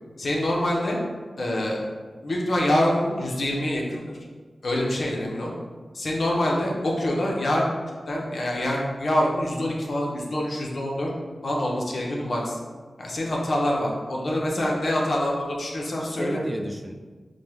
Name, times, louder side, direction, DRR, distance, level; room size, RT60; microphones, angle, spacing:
voice 1, 0.2-1.0 1.4-1.8 2.2-4.0 4.6-5.5 5.9-7.6 8.1-11.1 11.4-12.6 13.0-16.4, left 1 dB, 65° left, -3 dB, 0.8 m, -25 dB
voice 2, 14.3-14.9 16.0-16.9, equal, 15° right, 3 dB, 0.4 m, -34 dB
5.1 x 2.3 x 3.1 m, 1.4 s
cardioid pair, 50°, 0 cm